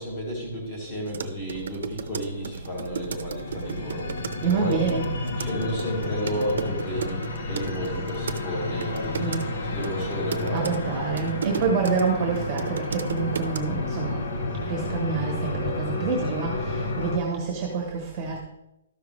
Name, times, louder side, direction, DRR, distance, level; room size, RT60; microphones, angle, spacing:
voice 1, 0.0-4.1 4.4-10.8, equal, 25° left, -3 dB, 2.8 m, -32 dB
sound 1, 1.1-8.4 8.8-9.4 9.8-12.0 12.4-13.6, right 6 dB, 55° right, 0.7 m, -34 dB
sound 2, 1.2-17.2, left 2 dB, 40° left, 0.9 m, -31 dB
voice 2, 4.4-5.0 9.2-9.5 10.5-18.4, right 5 dB, 15° right, -1 dB, 1.2 m, -27 dB
13.0 x 5.8 x 3.2 m, 0.88 s
hypercardioid pair, 180°, 0 cm